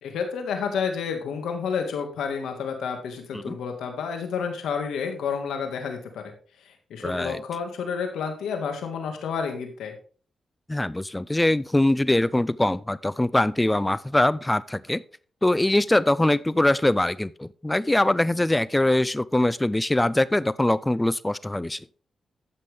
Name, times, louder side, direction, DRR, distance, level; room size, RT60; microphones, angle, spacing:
voice 1, 0.0-6.3 6.6-9.9, left 6 dB, 90° left, 5 dB, 1.9 m, -30 dB
voice 2, 7.0-7.4 10.7-15.0 15.4-21.8, left 1 dB, 15° left, 19 dB, 0.4 m, -22 dB
13.5 x 5.9 x 3.5 m, 0.41 s
cardioid pair, 60°, 0 cm